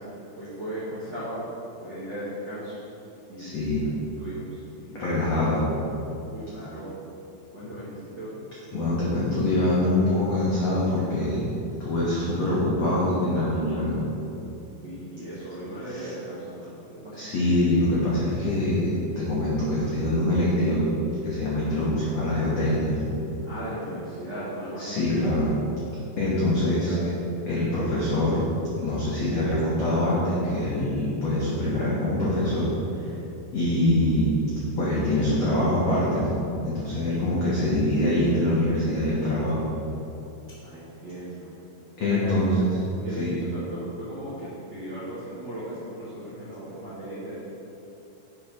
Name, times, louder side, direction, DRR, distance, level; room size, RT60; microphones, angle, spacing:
voice 1, 0.0-1.5 1.8-2.8 3.3-3.9 4.2-5.2 6.3-7.0 7.5-8.4 14.8-17.3 23.4-25.2 26.7-27.0 40.6-41.6 42.0-42.6 43.0-47.4, right 1 dB, 75° right, -10 dB, 1.0 m, -37 dB
voice 2, 3.4-3.8 5.0-5.6 8.7-11.5 11.8-14.0 16.0-16.1 17.2-18.9 19.1-20.8 21.2-22.9 24.8-25.5 26.2-26.9 27.5-28.4 28.8-32.7 33.5-34.3 34.8-36.3 36.7-39.6 42.0-42.5 43.2-43.3, left 1 dB, 80° left, -7 dB, 1.5 m, -24 dB
8.5 x 4.8 x 5.4 m, 2.9 s
omnidirectional pair, 4.9 m